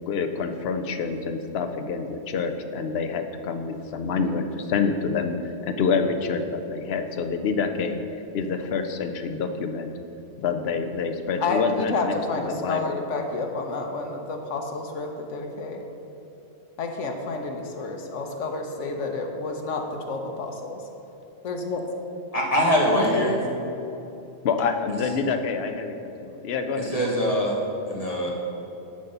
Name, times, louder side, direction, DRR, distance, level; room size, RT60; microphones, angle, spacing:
voice 1, 0.1-5.4 5.6-8.0 8.3-9.9 10.4-13.0 24.4-27.0, left 5 dB, 60° left, 7 dB, 0.9 m, -27 dB
voice 2, 11.4-15.8 16.8-20.8 21.4-21.8 22.9-23.4, left 3 dB, 90° left, 3 dB, 1.2 m, -30 dB
voice 3, 22.3-23.4 26.8-27.6 27.9-28.3, equal, 30° left, -2 dB, 1.6 m, -23 dB
11.0 x 4.2 x 6.7 m, 2.9 s
omnidirectional pair, 1.2 m